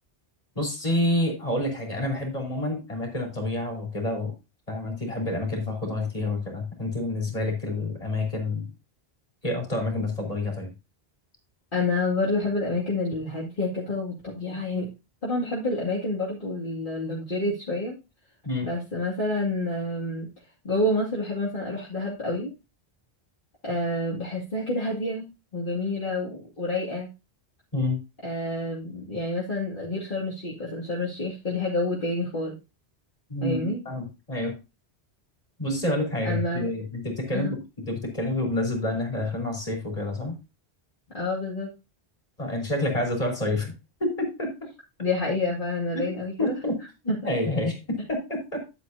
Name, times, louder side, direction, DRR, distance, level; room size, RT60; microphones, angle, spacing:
voice 1, 0.5-4.3 4.7-8.7 9.4-10.7 18.4-18.7 27.7-28.0 33.3-34.6 35.6-40.4 42.4-43.7 44.0-44.6 46.4-46.8 47.2-48.6, left 1 dB, 35° left, 0 dB, 4.1 m, -28 dB
voice 2, 11.7-14.9 15.2-18.0 18.6-20.3 20.6-22.5 23.6-25.3 25.5-27.1 28.2-32.6 33.4-33.8 36.2-36.7 37.3-37.6 41.1-41.7 45.0-46.5 47.1-47.3, left 2 dB, 50° left, -6 dB, 2.6 m, -28 dB
11.5 x 8.8 x 2.8 m, 0.26 s
omnidirectional pair, 1.1 m